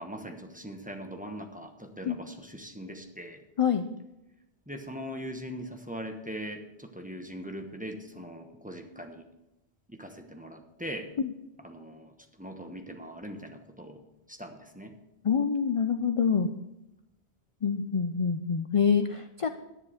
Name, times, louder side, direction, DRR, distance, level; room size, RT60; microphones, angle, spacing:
voice 1, 0.0-3.4 4.7-9.2 9.9-11.1 11.6-14.0 14.3-15.0, equal, 10° right, 4 dB, 1.0 m, -41 dB
voice 2, 15.2-16.5 17.6-19.5, left 6 dB, 45° left, 9 dB, 0.5 m, -26 dB
10.5 x 9.8 x 5.0 m, 0.94 s
omnidirectional pair, 1.1 m